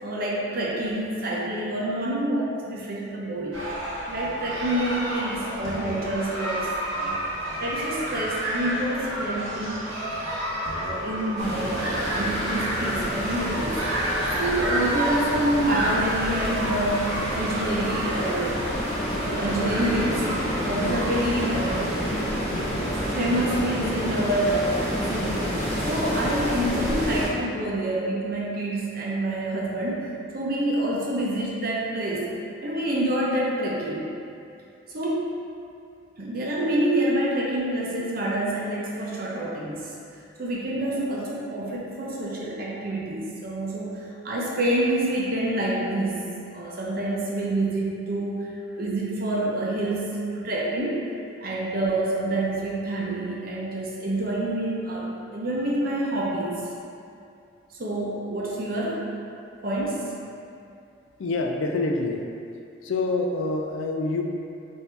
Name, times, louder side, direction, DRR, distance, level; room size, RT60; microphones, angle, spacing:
voice 1, 0.0-3.6 4.1-7.2 7.6-9.8 10.8-13.9 14.4-18.6 19.2-20.3 20.6-22.3 22.9-32.4 32.6-34.1 34.9-35.3 36.2-39.9 40.4-51.1 51.4-56.7 57.8-59.1 59.6-60.1, right 1 dB, 45° right, -4 dB, 0.6 m, -27 dB
sound 1, 3.5-21.9, right 1 dB, 85° right, 0.9 m, -30 dB
sound 2, 10.6-25.2, left 1 dB, 10° left, 1.3 m, -41 dB
sound 3, 11.4-27.3, equal, 30° left, 0.8 m, -29 dB
voice 2, 61.2-62.2 62.8-64.2, left 3 dB, 75° left, 2 dB, 0.4 m, -26 dB
4.4 x 2.7 x 3.4 m, 2.5 s
head